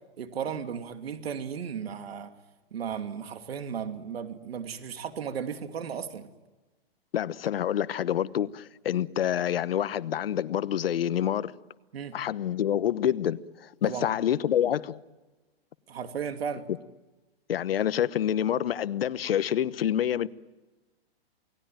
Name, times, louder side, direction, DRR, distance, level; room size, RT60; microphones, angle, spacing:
voice 1, 0.2-2.3 2.7-6.3 11.9-12.2 13.8-14.1 15.9-16.7, right 7 dB, 75° right, 2.7 m, -35 dB
voice 2, 7.1-11.5 12.1-15.0 17.5-20.3, left 10 dB, 65° left, 1.1 m, -27 dB
28.5 x 18.5 x 9.1 m
hypercardioid pair, 170°, 31 cm